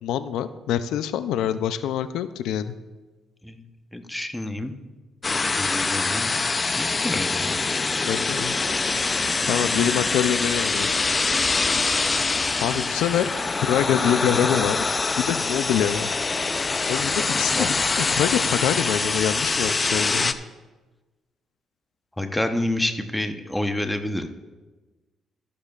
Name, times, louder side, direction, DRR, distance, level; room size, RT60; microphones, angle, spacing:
voice 1, 0.0-2.8 8.0-8.5 9.5-10.9 12.6-13.3 13.6-14.8 15.2-16.1 16.9-17.7 18.1-20.3, left 10 dB, 90° left, 12 dB, 0.4 m, -25 dB
voice 2, 3.9-4.7 5.3-6.3 6.8-7.6 17.5-17.7 22.2-24.3, left 1 dB, 10° left, 6 dB, 0.9 m, -28 dB
sound 1, 5.2-20.3, left 3 dB, 30° left, 0.5 m, -24 dB
13.5 x 11.5 x 2.4 m, 1.2 s
cardioid pair, 90°, 0 cm